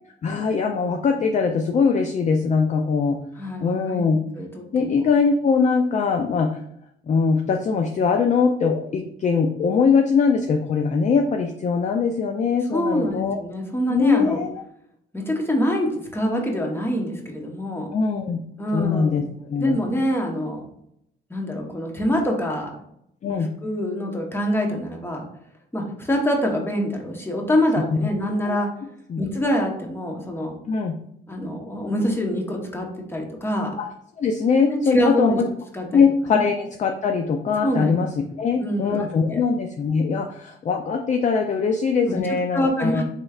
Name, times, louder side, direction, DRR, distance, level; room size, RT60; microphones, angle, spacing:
voice 1, 0.2-3.2 3.6-4.2 4.7-6.6 7.1-13.4 13.9-14.5 17.9-18.4 18.7-19.8 23.2-23.5 27.9-28.0 28.4-28.6 29.1-29.2 30.7-30.9 33.8-33.9 34.2-35.3 35.9-38.1 38.4-43.0, left 5 dB, 35° left, 4 dB, 0.4 m, -21 dB
voice 2, 3.4-4.1 4.4-5.0 12.7-14.4 15.1-17.9 18.6-19.2 19.6-20.6 21.3-22.7 23.2-25.2 25.7-28.7 29.2-30.6 31.3-33.8 34.7-35.4 35.7-36.0 36.3-36.4 37.6-37.9 38.5-39.4 42.1-42.2 42.5-43.0, equal, 10° left, 1 dB, 0.9 m, -25 dB
4.3 x 3.1 x 2.3 m, 0.74 s
cardioid pair, 90°, 20 cm